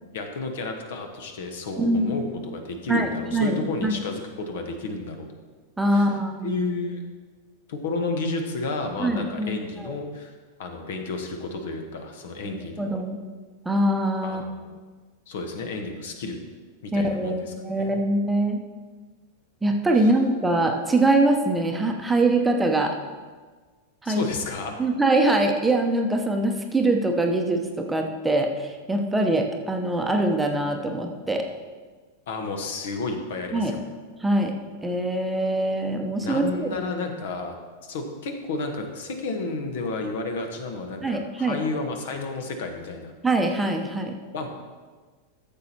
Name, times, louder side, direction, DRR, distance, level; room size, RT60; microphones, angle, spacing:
voice 1, 0.1-5.3 5.9-6.1 6.4-7.0 7.7-10.3 10.6-12.9 14.2-14.6 15.3-16.4 16.8-17.9 19.9-20.1 24.0-24.8 32.3-33.8 36.2-37.6 37.8-43.1 44.3-44.5, left 3 dB, 55° left, 4 dB, 1.2 m, -31 dB
voice 2, 1.8-2.1 2.9-3.9 5.8-6.6 9.0-9.5 9.8-9.9 12.8-13.2 13.6-14.4 16.9-18.6 19.6-23.0 24.0-24.2 24.8-31.4 33.5-33.7 34.2-34.5 34.8-36.7 41.0-41.6 43.2-44.1, right 2 dB, 10° right, 3 dB, 0.9 m, -23 dB
13.5 x 7.3 x 2.9 m, 1.4 s
figure-of-eight pair, 90°, 0 cm